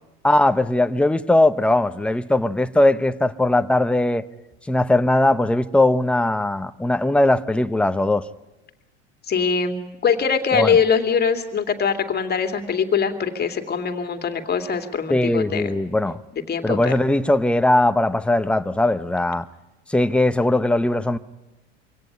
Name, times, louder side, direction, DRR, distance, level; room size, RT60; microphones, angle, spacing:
voice 1, 0.2-4.2 4.7-8.2 10.5-10.8 15.1-16.2 16.6-19.5 19.9-21.2, left 1 dB, 5° left, 0.9 m, -19 dB
voice 2, 9.3-15.7 16.5-16.9, left 6 dB, 30° left, 2.7 m, -22 dB
24.5 x 17.5 x 9.8 m
hypercardioid pair, 95°, 34 cm